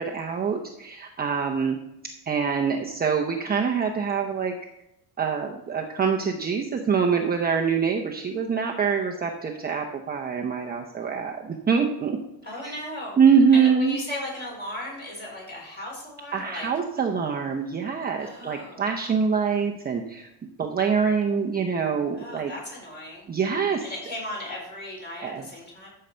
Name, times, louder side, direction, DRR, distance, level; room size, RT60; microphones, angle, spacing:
voice 1, 0.0-1.8 2.3-4.5 5.2-12.2 13.2-14.0 16.3-22.5 23.3-23.8 25.2-25.5, right 6 dB, 20° right, 1 dB, 0.7 m, -24 dB
voice 2, 12.4-13.2 13.5-16.7 18.2-18.9 22.1-23.3 23.8-25.9, left 1 dB, 25° left, -3 dB, 4.9 m, -36 dB
13.5 x 6.7 x 4.4 m, 0.84 s
cardioid pair, 155°, 43 cm